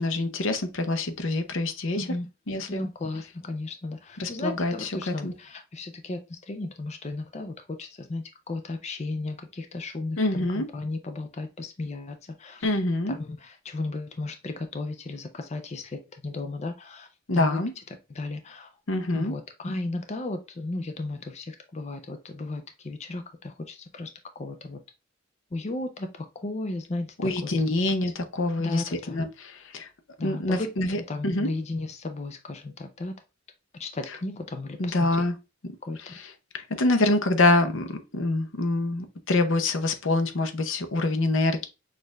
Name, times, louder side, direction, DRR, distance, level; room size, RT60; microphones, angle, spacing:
voice 1, 0.0-2.0 2.5-2.9 4.2-5.3 10.2-10.7 12.6-13.2 17.3-17.7 18.9-19.3 27.2-29.9 30.2-31.5 34.8-35.3 36.0-41.7, left 2 dB, 85° left, 0.8 m, -26 dB
voice 2, 1.9-2.3 2.7-12.8 13.1-17.1 17.3-17.6 18.1-18.7 19.1-24.1 24.4-24.8 25.5-27.5 28.6-29.2 30.2-33.1 33.8-35.2 35.8-36.1, left 2 dB, 35° left, 0.5 m, -35 dB
6.3 x 2.5 x 3.3 m
head